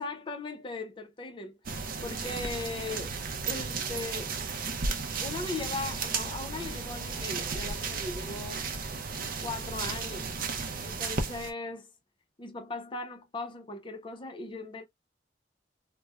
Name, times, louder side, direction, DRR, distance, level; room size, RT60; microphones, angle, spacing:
voice 1, 0.0-3.1 3.5-4.4 5.2-8.7 9.4-10.3 10.8-11.9 12.4-14.9, left 3 dB, 25° left, 0.6 m, -38 dB
sound 1, 1.7-11.5, right 4 dB, 50° right, 0.6 m, -34 dB
3.1 x 2.1 x 2.3 m
head